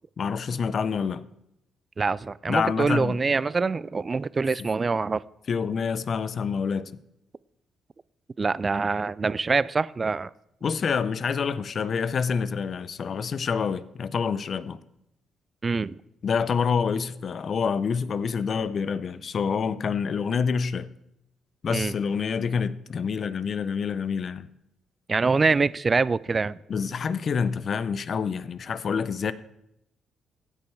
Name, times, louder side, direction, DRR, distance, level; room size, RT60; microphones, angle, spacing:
voice 1, 0.2-1.2 2.5-3.2 5.5-6.9 10.6-14.8 16.2-20.9 21.6-24.5 26.7-29.3, left 6 dB, 50° left, 0.5 m, -27 dB
voice 2, 2.0-5.2 8.4-10.3 15.6-16.0 21.7-21.9 25.1-26.6, right 4 dB, 30° right, 0.3 m, -25 dB
16.0 x 5.4 x 4.6 m
cardioid pair, 90°, 0 cm